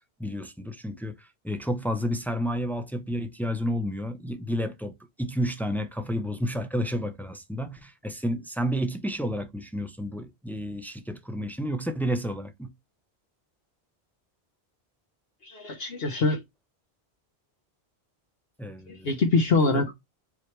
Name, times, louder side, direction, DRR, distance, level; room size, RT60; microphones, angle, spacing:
voice 1, 0.2-12.7 18.6-19.1, equal, ahead, 0.4 m, -31 dB
voice 2, 15.4-16.4 18.9-19.9, left 3 dB, 70° left, 1.1 m, -24 dB
4.7 x 2.9 x 3.2 m
omnidirectional pair, 1.1 m